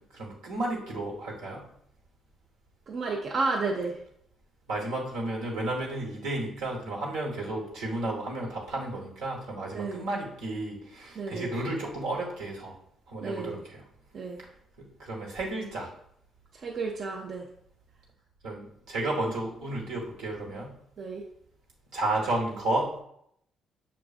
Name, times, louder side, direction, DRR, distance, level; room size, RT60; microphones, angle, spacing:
voice 1, 0.0-1.6 4.7-12.7 13.1-13.8 14.8-15.9 18.4-20.7 21.9-22.9, right 2 dB, 85° right, -2 dB, 1.0 m, -32 dB
voice 2, 2.9-4.0 9.7-10.0 11.2-11.5 13.2-13.6 14.1-14.4 16.6-17.5 21.0-21.2, right 3 dB, 55° right, -1 dB, 0.5 m, -31 dB
5.9 x 2.5 x 2.4 m, 0.71 s
hypercardioid pair, 55°, 0 cm